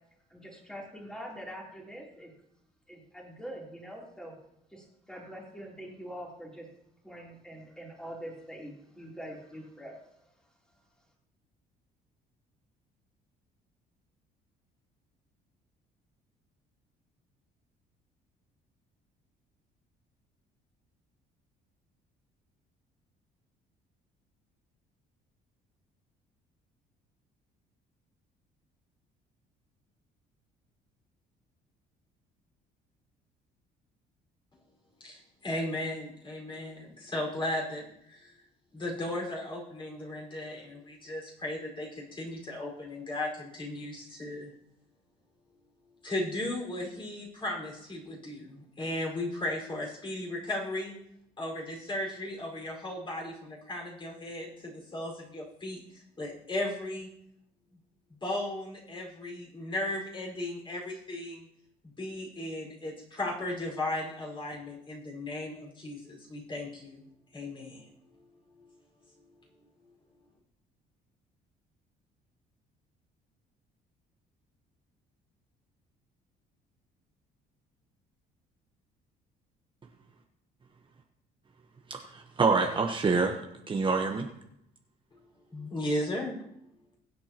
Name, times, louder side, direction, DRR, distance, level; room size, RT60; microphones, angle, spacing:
voice 1, 0.3-2.3 2.9-4.3 4.7-6.7 7.0-10.0, equal, 5° left, -3 dB, 3.4 m, -44 dB
voice 2, 35.0-38.3 38.7-44.5 46.0-50.9 51.4-57.1 58.2-61.4 61.8-67.0 67.3-67.8 85.5-86.4, left 1 dB, 30° left, -1 dB, 5.0 m, -36 dB
voice 3, 81.9-83.4 83.7-84.3, right 4 dB, 30° right, 3 dB, 1.1 m, -26 dB
22.0 x 8.2 x 3.0 m, 0.77 s
cardioid pair, 110°, 17 cm